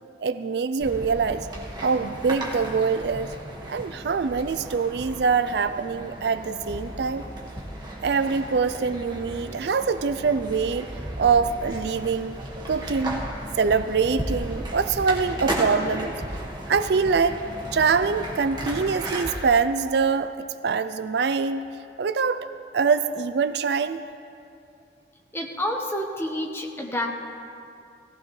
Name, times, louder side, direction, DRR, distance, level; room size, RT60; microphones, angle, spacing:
voice 1, 0.2-1.5 1.8-3.3 3.7-7.2 8.0-10.9 11.2-12.3 12.7-13.2 13.5-16.1 16.7-17.4 17.7-20.3 20.6-21.7 22.0-22.5 22.7-24.0, right 5 dB, 60° right, 12 dB, 0.4 m, -24 dB
sound 1, 0.8-19.3, right 1 dB, 25° right, 1.6 m, -35 dB
voice 2, 25.3-27.1, left 1 dB, 15° left, 1 dB, 1.1 m, -29 dB
18.5 x 15.0 x 3.2 m, 2.6 s
head